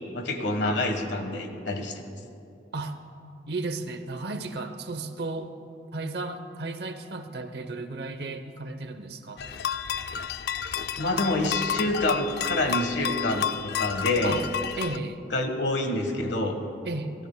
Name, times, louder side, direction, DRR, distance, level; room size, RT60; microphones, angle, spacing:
voice 1, 0.1-2.0 11.0-14.4 15.3-16.6, left 2 dB, 80° left, 5 dB, 1.3 m, -27 dB
voice 2, 3.5-5.5 5.9-9.4 14.2-14.4 14.8-15.2 16.8-17.1, right 2 dB, 65° right, 8 dB, 0.8 m, -34 dB
sound 1, 9.4-15.0, left 8 dB, 60° left, 0.4 m, -31 dB
28.5 x 13.0 x 2.2 m, 2.6 s
head